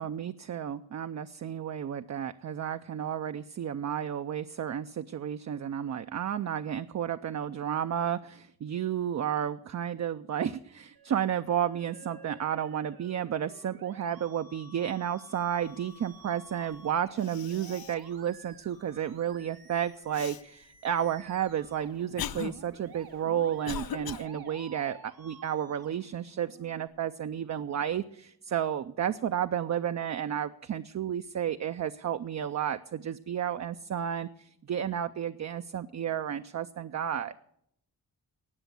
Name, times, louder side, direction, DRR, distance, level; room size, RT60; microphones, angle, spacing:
voice 1, 0.0-37.3, right 9 dB, 50° right, 9 dB, 0.5 m, -32 dB
Musical instrument, 10.9-26.9, right 4 dB, 85° right, 2.2 m, -53 dB
Cough, 16.7-16.8 17.2-18.1 18.5-18.6 20.1-20.4 21.2-24.3, left 9 dB, 75° left, 0.6 m, -39 dB
18.5 x 7.0 x 8.1 m, 0.71 s
wide cardioid pair, 175°, 37 cm